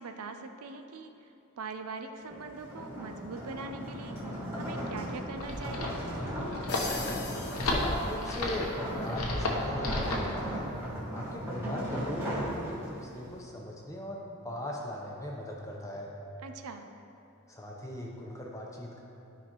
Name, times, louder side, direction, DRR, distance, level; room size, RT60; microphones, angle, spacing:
voice 1, 0.0-4.2 4.5-5.9 16.4-16.9, right 4 dB, 80° right, 6 dB, 0.5 m, -42 dB
sound 1, 2.2-13.2, equal, 10° right, 1.5 m, -37 dB
sound 2, 5.1-10.3, left 2 dB, 85° left, 1.0 m, -33 dB
sound 3, 6.7-8.8, left 4 dB, 50° left, 0.9 m, -41 dB
voice 2, 7.6-10.6 11.1-16.1 17.5-19.0, left 1 dB, 15° left, -2 dB, 0.8 m, -39 dB
12.5 x 5.0 x 3.0 m, 2.8 s
head